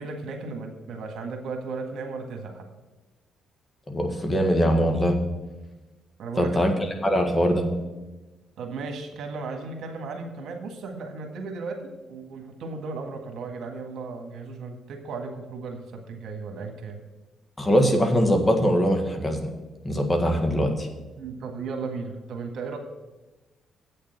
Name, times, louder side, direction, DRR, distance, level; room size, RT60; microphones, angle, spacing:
voice 1, 0.0-2.6 6.2-6.6 8.6-11.8 12.1-17.0 21.2-22.8, right 4 dB, 75° right, 3 dB, 1.7 m, -35 dB
voice 2, 3.9-5.2 6.4-6.7 7.0-7.6 17.6-19.5 19.8-20.9, equal, 25° left, 4 dB, 1.7 m, -22 dB
8.4 x 6.6 x 8.0 m, 1.1 s
cardioid pair, 90°, 0 cm